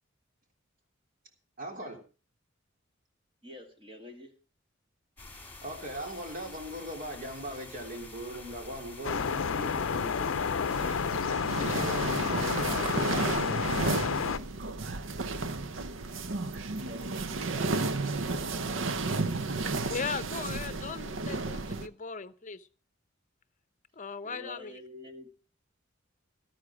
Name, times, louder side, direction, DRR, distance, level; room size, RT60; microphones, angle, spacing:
voice 1, 1.6-2.0 5.6-10.7 11.1-11.2 11.6-13.2, right 1 dB, 45° right, 3 dB, 3.3 m, -40 dB
voice 2, 3.4-4.3 16.5-20.0 24.2-25.3, left 1 dB, 25° right, 5 dB, 2.4 m, -49 dB
Nolde Forest - Wind Through Trees, 5.2-11.3, left 2 dB, 10° left, 3.9 m, -48 dB
sound 1, 9.0-14.4, left 6 dB, 80° left, 0.6 m, -30 dB
sound 2, 10.7-21.9, right 3 dB, 70° right, 0.8 m, -32 dB
voice 3, 19.9-22.7 24.0-24.7, left 5 dB, 40° left, 14 dB, 0.8 m, -38 dB
13.0 x 13.0 x 5.0 m, 0.37 s
head